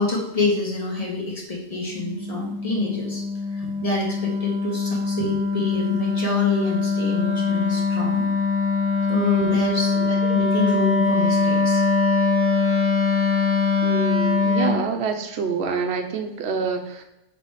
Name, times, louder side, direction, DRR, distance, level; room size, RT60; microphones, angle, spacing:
voice 1, 0.0-3.2 3.5-8.3 9.1-11.8, left 3 dB, 30° left, -1 dB, 1.4 m, -27 dB
Wind instrument woodwind instrument, 1.9-14.8, left 4 dB, 10° left, 1.0 m, -22 dB
voice 2, 9.2-9.7 13.8-17.0, right 5 dB, 60° right, 5 dB, 1.0 m, -27 dB
6.0 x 3.3 x 4.8 m, 0.89 s
omnidirectional pair, 1.3 m